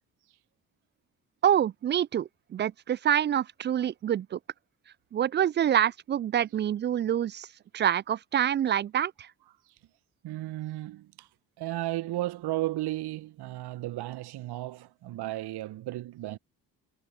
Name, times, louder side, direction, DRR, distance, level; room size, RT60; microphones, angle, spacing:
voice 1, 1.4-4.4 5.1-7.5 7.7-9.3, right 10 dB, 25° right, 0.3 m, -26 dB
voice 2, 10.2-11.3 11.6-16.4, right 16 dB, 55° right, 1.2 m, -34 dB
figure-of-eight pair, 40°, 47 cm